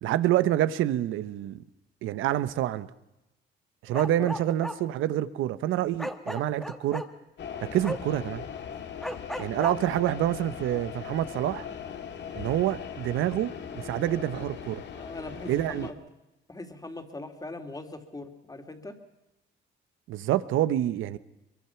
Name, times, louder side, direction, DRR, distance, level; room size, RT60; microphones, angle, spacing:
voice 1, 0.0-1.6 2.0-2.9 3.8-7.1 7.6-8.5 9.4-11.6 12.3-14.8 15.5-15.9 20.1-21.2, right 12 dB, 90° right, 1.0 m, -27 dB
Bark, 3.9-4.8 6.0-7.1 7.8-8.0 9.0-9.8, equal, ahead, 1.6 m, -34 dB
sound 1, 7.4-15.9, left 8 dB, 65° left, 1.9 m, -39 dB
voice 2, 14.9-16.0 16.5-19.0, left 2 dB, 20° left, 2.8 m, -41 dB
23.0 x 23.0 x 5.9 m
cardioid pair, 90°, 20 cm